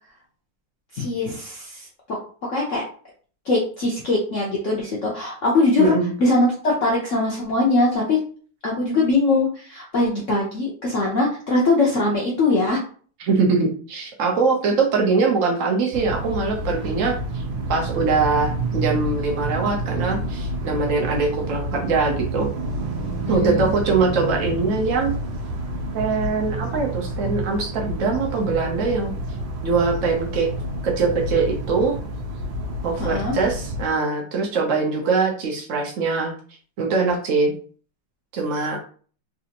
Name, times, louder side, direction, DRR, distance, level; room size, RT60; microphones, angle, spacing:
voice 1, 0.9-2.2 2.5-2.8 3.5-8.2 8.6-12.8 23.2-23.8 33.0-33.3, left 2 dB, 75° left, -3 dB, 0.7 m, -21 dB
voice 2, 5.8-6.1 13.2-17.4 17.7-22.5 23.3-25.1 25.9-29.1 29.6-30.5 30.8-32.0 32.8-36.3 36.8-37.5 38.3-38.8, right 4 dB, 90° right, 0 dB, 0.7 m, -22 dB
sound 1, 15.9-33.9, right 1 dB, 75° right, 1.4 m, -29 dB
4.1 x 2.5 x 2.8 m, 0.43 s
omnidirectional pair, 2.4 m